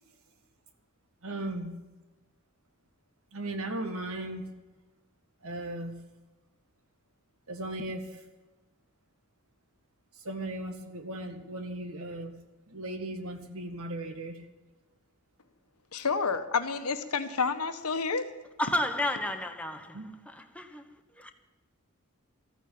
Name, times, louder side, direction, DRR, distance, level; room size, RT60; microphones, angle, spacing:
voice 1, 1.2-1.7 3.3-4.5 5.4-5.9 7.5-8.2 10.2-12.3 12.7-14.5 19.9-20.1, right 1 dB, 75° right, 1.9 m, -37 dB
voice 2, 15.9-18.2, left 5 dB, 90° left, 1.3 m, -29 dB
voice 3, 18.6-20.0 20.3-20.8 21.2-21.3, left 1 dB, 5° left, 1.0 m, -31 dB
14.0 x 9.2 x 8.7 m
head